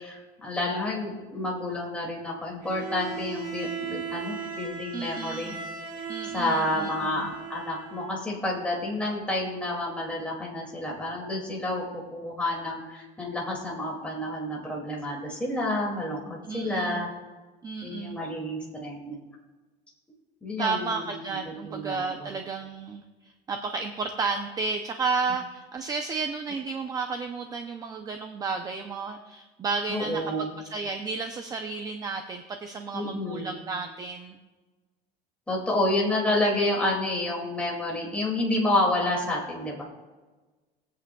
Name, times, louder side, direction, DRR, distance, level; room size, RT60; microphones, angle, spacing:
voice 1, 0.0-5.5 6.3-17.1 17.8-19.2 20.4-22.3 29.9-30.5 32.9-33.5 35.5-39.8, left 1 dB, 5° left, -3 dB, 2.3 m, -29 dB
Bowed string instrument, 2.6-8.2, right 6 dB, 50° right, 1.3 m, -37 dB
voice 2, 4.9-5.6 6.1-7.3 16.4-17.0 17.6-18.2 20.6-23.0 23.5-34.4, right 4 dB, 20° right, 5 dB, 0.5 m, -32 dB
20.0 x 8.4 x 2.3 m, 1.3 s
cardioid pair, 175°, 19 cm